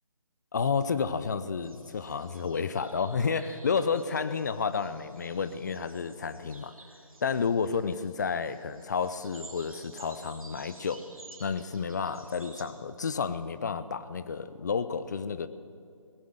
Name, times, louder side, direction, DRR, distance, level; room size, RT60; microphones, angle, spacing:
voice 1, 0.5-6.7 7.2-11.1 11.4-15.5, left 5 dB, 30° left, 13 dB, 0.5 m, -31 dB
sound 1, 1.6-12.7, right 2 dB, 80° right, 2.8 m, -53 dB
17.5 x 9.2 x 7.9 m, 2.3 s
figure-of-eight pair, 150°, 18 cm